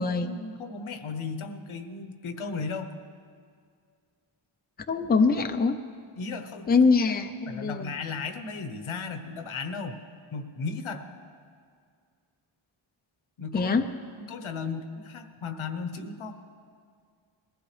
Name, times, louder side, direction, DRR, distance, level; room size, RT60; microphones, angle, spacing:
voice 1, 0.0-3.0 6.2-6.7 7.5-10.0 10.3-11.1 13.4-13.7 14.1-16.3, left 4 dB, 80° left, 7 dB, 1.1 m, -35 dB
voice 2, 4.9-5.7 6.7-7.9 13.5-13.9, left 4 dB, 20° left, 6 dB, 0.6 m, -23 dB
21.0 x 15.0 x 3.3 m, 2.1 s
wide cardioid pair, 110°, 48 cm